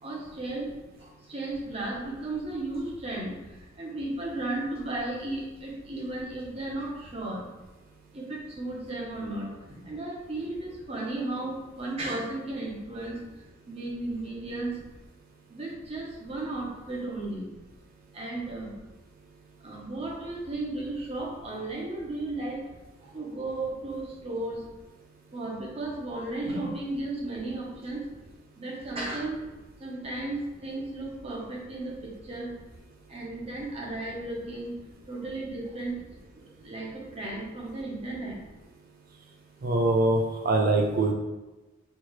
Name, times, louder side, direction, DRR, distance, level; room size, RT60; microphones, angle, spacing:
voice 1, 0.0-0.7 1.0-3.3 3.8-7.4 8.1-13.2 13.7-14.8 15.5-17.5 18.1-18.7 19.6-22.6 23.0-24.6 25.3-28.1 28.6-29.5 29.8-32.5 33.1-34.7 35.1-36.0 36.3-38.4, right 2 dB, 30° right, -3 dB, 0.8 m, -34 dB
voice 2, 39.6-41.1, right 2 dB, 45° right, 2 dB, 0.4 m, -23 dB
4.5 x 2.4 x 3.0 m, 1.1 s
head